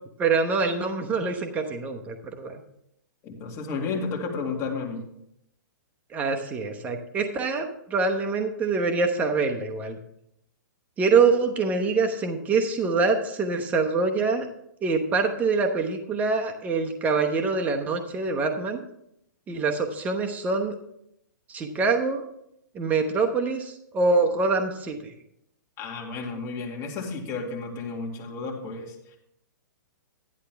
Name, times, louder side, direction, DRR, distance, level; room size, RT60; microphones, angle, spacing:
voice 1, 0.2-2.6 6.1-10.0 11.0-14.5 14.8-18.8 19.5-20.7 21.5-22.2 22.7-25.1, right 4 dB, 15° right, 4 dB, 0.9 m, -25 dB
voice 2, 3.2-5.1 25.8-29.2, left 4 dB, 25° left, -1 dB, 2.2 m, -32 dB
11.0 x 10.5 x 3.5 m, 0.76 s
hypercardioid pair, 150°, 11 cm